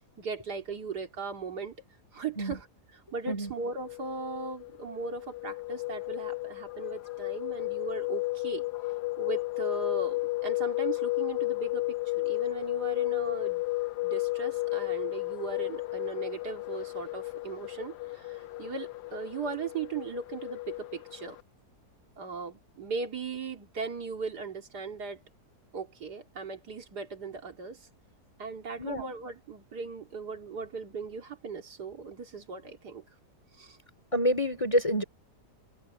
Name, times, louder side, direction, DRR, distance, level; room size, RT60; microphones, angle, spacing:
voice 1, 0.2-1.8 2.1-2.7 2.9-8.6 9.2-13.6 14.0-21.4 22.2-25.2 25.7-27.9 28.4-33.0 33.5-33.8, right 4 dB, 80° right, 3.0 m, -38 dB
sound 1, 3.7-21.4, left 21 dB, 90° left, 1.3 m, -33 dB
voice 2, 34.1-35.0, equal, 20° left, 3.0 m, -27 dB
omnidirectional pair, 1.7 m